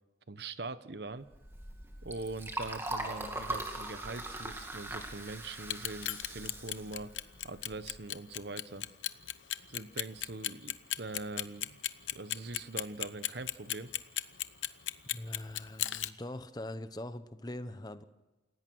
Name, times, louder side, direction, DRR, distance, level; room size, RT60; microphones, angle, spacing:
voice 1, 0.3-1.3 2.0-7.1 7.4-8.8 9.7-11.8 12.1-13.9, right 3 dB, 60° right, 13 dB, 1.0 m, -42 dB
Liquid, 1.3-8.0, right 2 dB, 15° right, 2.2 m, -41 dB
Clock, 5.6-16.1, left 13 dB, 85° left, 0.9 m, -35 dB
voice 2, 15.1-18.0, left 1 dB, 20° left, 11 dB, 0.9 m, -42 dB
28.5 x 16.5 x 6.3 m, 1.1 s
head